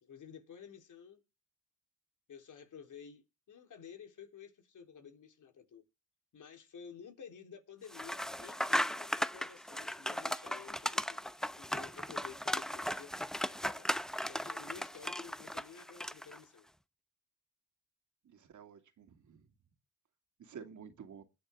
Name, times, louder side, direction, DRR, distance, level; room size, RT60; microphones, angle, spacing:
voice 1, 0.0-1.2 2.3-5.8 6.3-13.2 13.5-13.9 14.3-16.7, left 7 dB, 70° left, 3.9 m, -52 dB
sound 1, 7.9-16.4, equal, ahead, 0.8 m, -37 dB
voice 2, 18.2-19.5 20.4-21.2, right 7 dB, 65° right, 2.7 m, -51 dB
21.5 x 8.6 x 3.7 m
supercardioid pair, 60°, 32 cm